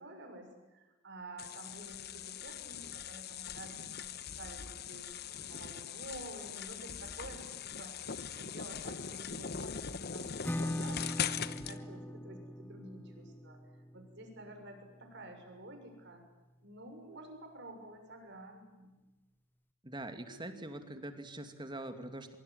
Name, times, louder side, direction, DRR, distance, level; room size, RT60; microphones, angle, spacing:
voice 1, 0.0-5.1 5.5-8.0 8.3-11.3 11.6-13.6 13.9-16.2 16.6-18.9, right 2 dB, 55° right, 5 dB, 6.5 m, -50 dB
sound 1, 1.4-11.8, left 7 dB, 50° left, 1.1 m, -41 dB
Acoustic guitar / Strum, 10.4-15.9, left 1 dB, 10° left, 1.0 m, -42 dB
voice 2, 19.8-22.3, right 1 dB, 20° right, 8 dB, 2.5 m, -43 dB
24.0 x 23.5 x 9.5 m, 1.1 s
head